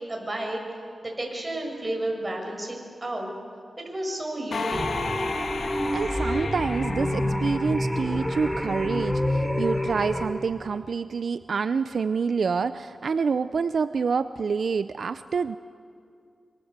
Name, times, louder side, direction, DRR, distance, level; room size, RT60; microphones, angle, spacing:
voice 1, 0.1-0.6 1.0-3.3 3.8-4.9, right 1 dB, 25° right, 1 dB, 6.9 m, -31 dB
sound 1, 4.5-8.2, left 4 dB, 80° left, 1.4 m, -34 dB
sound 2, 4.7-10.3, left 1 dB, 5° left, 3.7 m, -27 dB
voice 2, 5.9-15.6, right 5 dB, 75° right, 12 dB, 0.5 m, -27 dB
26.0 x 25.5 x 8.1 m, 2.4 s
wide cardioid pair, 75°, 0 cm